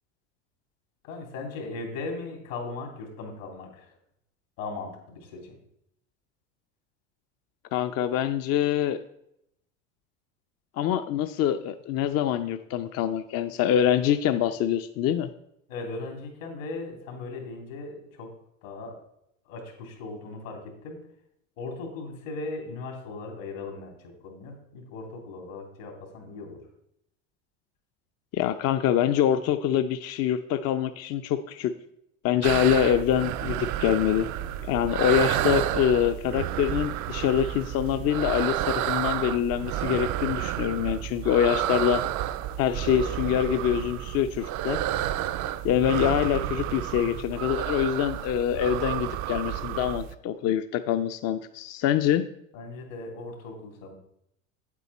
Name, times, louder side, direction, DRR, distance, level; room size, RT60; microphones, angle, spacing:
voice 1, 1.0-3.9 4.6-5.6 15.7-18.3 18.6-19.0 19.4-21.0 21.6-26.6 52.5-53.9, left 3 dB, 80° left, 2 dB, 3.2 m, -38 dB
voice 2, 7.7-9.0 10.8-15.3 28.3-31.7 32.2-34.3 34.6-42.0 42.6-44.8 45.6-52.2, left 10 dB, 40° left, 9 dB, 0.5 m, -25 dB
sound 1, 32.4-50.1, right 13 dB, 50° right, 0.6 m, -30 dB
8.4 x 8.3 x 4.1 m, 0.76 s
hypercardioid pair, 100°, 39 cm